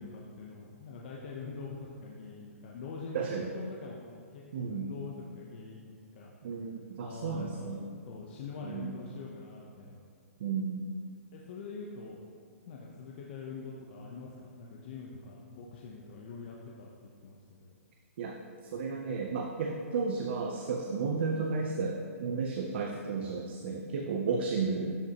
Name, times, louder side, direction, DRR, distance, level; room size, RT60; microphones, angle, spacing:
voice 1, 0.0-6.3 7.0-10.0 11.3-12.2 12.6-17.8, left 4 dB, 40° left, -3 dB, 0.8 m, -44 dB
voice 2, 3.1-3.5 4.5-4.9 6.4-7.8 8.6-8.9 10.4-10.9 18.2-18.4 18.7-24.9, right 4 dB, 45° right, 2 dB, 0.6 m, -33 dB
12.0 x 5.3 x 2.9 m, 2.2 s
hypercardioid pair, 165°, 8 cm